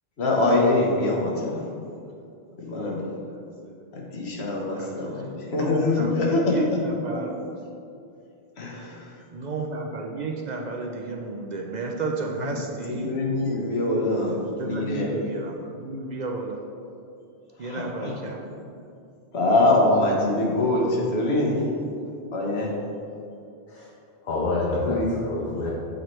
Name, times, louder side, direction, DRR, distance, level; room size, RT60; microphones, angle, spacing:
voice 1, 0.2-1.7 2.6-3.0 3.9-6.8 7.1-7.2 8.6-9.0 12.5-15.1 17.6-18.1 19.3-21.6 22.3-22.7 24.8-25.2, left 2 dB, 85° left, -2 dB, 1.3 m, -24 dB
voice 2, 4.6-5.2 5.6-7.3 9.3-13.1 14.6-16.6 17.6-18.7, right 3 dB, 55° right, 1 dB, 0.5 m, -33 dB
voice 3, 24.2-25.7, left 2 dB, 55° left, -4 dB, 0.9 m, -27 dB
7.8 x 4.4 x 3.1 m, 2.5 s
omnidirectional pair, 1.0 m